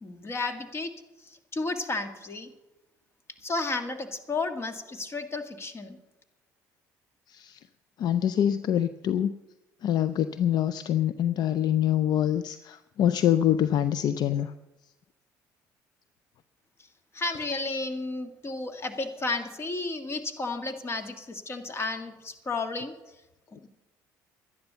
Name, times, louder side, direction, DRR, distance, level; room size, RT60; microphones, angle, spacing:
voice 1, 0.0-0.9 1.5-2.5 3.4-6.0 17.1-22.9, left 3 dB, 35° left, 7 dB, 1.8 m, -32 dB
voice 2, 7.3-7.6 8.0-9.3 9.8-14.5, left 10 dB, 60° left, 13 dB, 0.5 m, -25 dB
12.0 x 10.5 x 6.8 m, 0.99 s
supercardioid pair, 75°, 8 cm